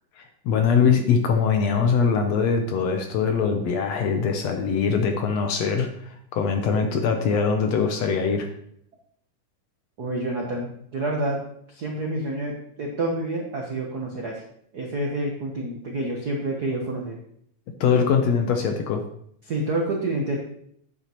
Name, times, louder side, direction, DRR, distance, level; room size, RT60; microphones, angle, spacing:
voice 1, 0.2-8.5 17.8-19.0, left 6 dB, 70° left, 5 dB, 1.7 m, -22 dB
voice 2, 10.0-11.4 11.7-14.4 14.7-17.2 19.4-20.4, right 2 dB, 80° right, 0 dB, 0.8 m, -28 dB
10.0 x 8.6 x 3.0 m, 0.67 s
omnidirectional pair, 3.6 m